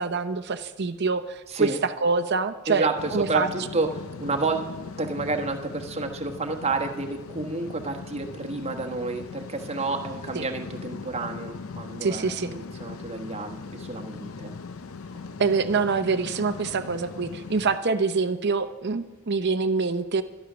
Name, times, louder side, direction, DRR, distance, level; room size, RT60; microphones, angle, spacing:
voice 1, 0.0-3.5 10.3-10.5 12.0-12.5 15.4-20.2, right 4 dB, 50° right, 10 dB, 0.7 m, -25 dB
voice 2, 1.5-1.8 2.7-4.7 5.0-14.5, right 3 dB, 30° right, 3 dB, 1.2 m, -30 dB
sound 1, 3.0-17.8, left 4 dB, 70° left, 0.6 m, -39 dB
13.5 x 11.5 x 6.2 m, 1.1 s
head